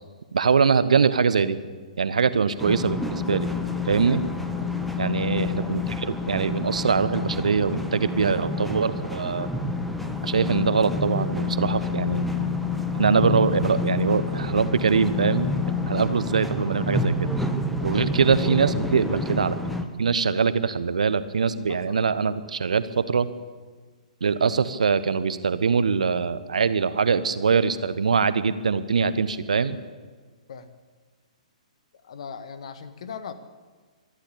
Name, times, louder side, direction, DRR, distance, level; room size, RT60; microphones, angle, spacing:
voice 1, 0.3-1.6 2.0-3.5 3.9-4.2 5.0-9.5 10.2-12.4 13.0-15.5 15.9-17.3 17.8-19.6 20.0-23.3 24.2-29.8, right 5 dB, 65° right, 14 dB, 1.2 m, -23 dB
sound 1, 2.6-19.8, left 3 dB, ahead, 1.5 m, -28 dB
voice 2, 17.8-18.2 21.4-22.0 30.5-30.7 32.0-33.3, left 6 dB, 55° left, 12 dB, 1.8 m, -40 dB
25.5 x 12.0 x 8.7 m, 1.5 s
figure-of-eight pair, 120°, 4 cm